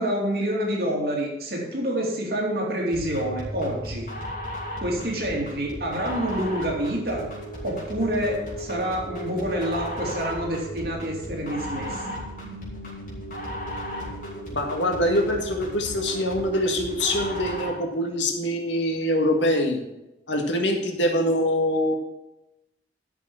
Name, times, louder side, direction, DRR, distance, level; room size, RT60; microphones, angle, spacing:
voice 1, 0.0-4.1 4.8-7.3 7.6-12.2, equal, 55° right, -1 dB, 2.8 m, -27 dB
sound 1, 2.9-17.9, equal, 45° left, 4.2 m, -35 dB
voice 2, 14.5-19.8 20.3-21.9, left 1 dB, 85° left, 3 dB, 1.8 m, -24 dB
11.5 x 6.9 x 6.3 m, 0.92 s
head